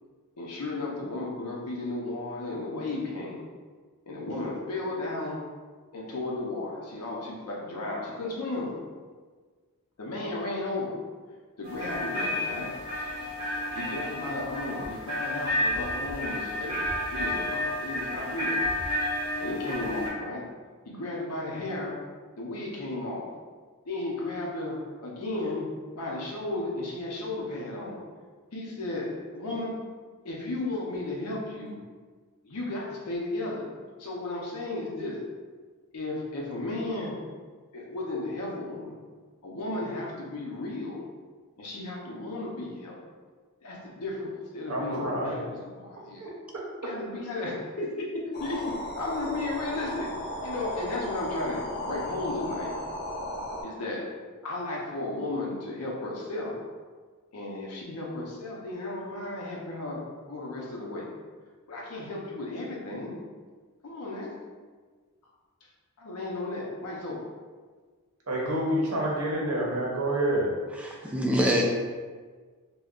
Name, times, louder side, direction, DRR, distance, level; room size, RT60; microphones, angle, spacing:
voice 1, 0.4-3.4 4.1-5.4 5.9-8.7 10.0-11.0 11.6-12.7 13.7-16.8 17.1-18.7 19.4-20.5 20.9-22.0 22.4-23.3 23.9-25.7 25.9-28.0 28.5-29.8 30.2-31.8 32.4-33.7 34.0-35.2 35.9-37.2 37.7-39.0 39.4-41.0 41.6-42.9 43.6-46.3 46.8-48.6 49.0-50.1 50.4-52.7 53.6-54.1 54.4-56.5 57.3-61.1 61.7-63.1 63.8-64.3 66.0-67.2, left 2 dB, 85° left, -3 dB, 0.6 m, -34 dB
sound 1, 11.6-20.1, left 1 dB, 20° right, 0.9 m, -31 dB
voice 2, 44.7-45.5 46.2-46.3 68.3-70.5, right 1 dB, 70° right, -3 dB, 0.7 m, -28 dB
sound 2, 48.3-53.6, left 1 dB, 45° left, 0.6 m, -35 dB
voice 3, 70.7-71.6, equal, 5° right, -2 dB, 0.3 m, -25 dB
2.3 x 2.2 x 3.6 m, 1.5 s
head